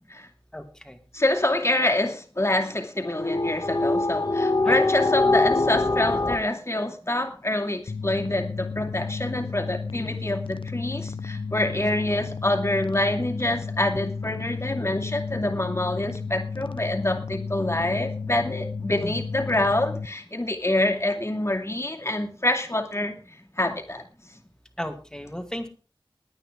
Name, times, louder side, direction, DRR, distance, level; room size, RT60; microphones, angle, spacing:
voice 1, 0.5-1.0 4.6-4.8 19.0-19.2 24.8-25.7, equal, 5° left, 2.4 m, -35 dB
voice 2, 1.1-23.2 23.6-24.0, left 1 dB, 30° left, 2.5 m, -26 dB
sound 1, 3.1-6.4, left 2 dB, 55° left, 1.4 m, -23 dB
sound 2, 7.9-20.1, left 4 dB, 80° left, 0.6 m, -33 dB
21.0 x 8.8 x 3.7 m
wide cardioid pair, 50°, 9 cm